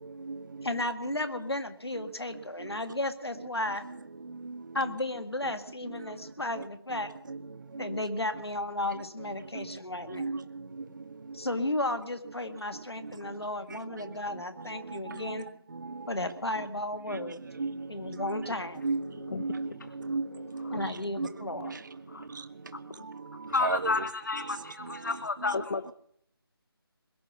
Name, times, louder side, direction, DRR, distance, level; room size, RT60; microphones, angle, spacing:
voice 1, 0.0-0.8 2.6-2.7 4.3-4.9 5.4-5.5 5.9-6.0 6.6-6.7 6.9-7.0 7.3-7.4 7.7-8.0 9.6-9.7 10.1-10.4 13.2-13.3 13.7-14.1 14.6-15.4 15.7-16.3 17.1-18.5 18.8-21.3 21.6-21.8 22.3-22.4 23.0-24.0 24.4-25.2 25.5-25.6, right 4 dB, 50° right, 17 dB, 0.5 m, -37 dB
voice 2, 0.6-3.8 4.7-7.1 7.8-10.3 11.3-15.5 16.1-17.4 17.9-18.8 20.7-21.7, left 1 dB, 80° left, 9 dB, 1.9 m, -34 dB
voice 3, 18.8-19.7 20.0-20.9 22.1-22.3 22.7-23.1 23.5-25.9, left 3 dB, 50° left, 15 dB, 0.6 m, -33 dB
21.5 x 7.6 x 8.1 m, 0.68 s
figure-of-eight pair, 160°, 13 cm